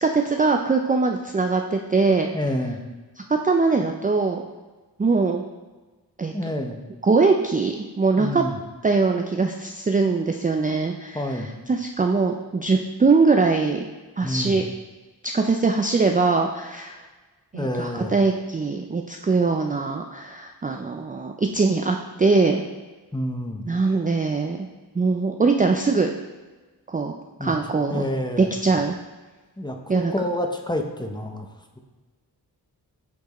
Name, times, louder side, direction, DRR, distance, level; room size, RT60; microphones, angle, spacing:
voice 1, 0.0-2.3 3.4-4.4 5.0-5.4 6.2-6.3 7.1-8.4 8.8-11.2 11.7-13.9 14.2-14.6 15.2-17.0 17.5-22.6 23.7-24.7 25.0-26.1 26.9-27.1 27.4-28.0 28.4-28.9 29.9-30.1, right 4 dB, 20° right, 3 dB, 0.4 m, -22 dB
voice 2, 2.3-2.8 6.3-6.8 8.2-8.6 11.1-11.6 14.2-14.6 17.5-18.1 23.1-23.7 27.4-27.5 27.8-28.5 29.6-31.5, left 1 dB, 10° left, 3 dB, 0.8 m, -28 dB
8.3 x 4.4 x 3.0 m, 1.3 s
cardioid pair, 55°, 41 cm